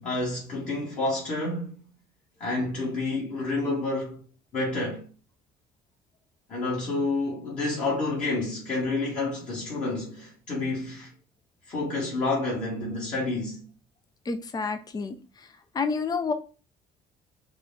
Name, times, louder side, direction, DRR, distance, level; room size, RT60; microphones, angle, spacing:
voice 1, 0.0-1.8 2.4-4.2 4.5-5.0 6.5-11.1 11.7-13.6, left 2 dB, 45° left, 1.8 m, -29 dB
voice 2, 14.3-15.2 15.7-16.3, left 4 dB, 25° left, 0.5 m, -28 dB
4.9 x 2.4 x 3.8 m
cardioid pair, 110°, 17 cm